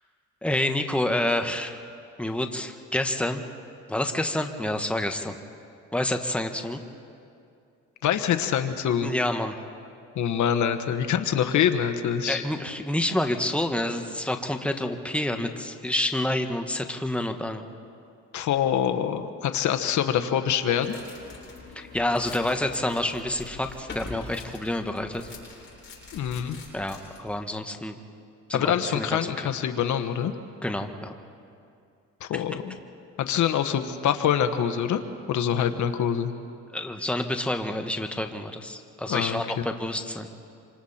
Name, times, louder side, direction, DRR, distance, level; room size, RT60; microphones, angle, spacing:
voice 1, 0.4-1.8 2.2-3.4 3.9-5.4 5.9-6.8 9.0-9.6 12.3-17.7 21.7-25.3 26.7-27.9 28.5-29.2 30.6-31.1 32.3-32.4 36.7-40.3, left 1 dB, 5° left, 5 dB, 1.5 m, -28 dB
voice 2, 8.0-9.1 10.1-12.4 18.3-20.9 26.1-26.6 28.5-30.3 32.2-32.7 33.2-35.0 35.3-36.3 39.1-39.6, left 9 dB, 75° left, 8 dB, 1.2 m, -25 dB
sound 1, 20.8-27.3, left 3 dB, 40° left, 7.7 m, -44 dB
27.0 x 26.0 x 4.4 m, 2.5 s
cardioid pair, 90°, 30 cm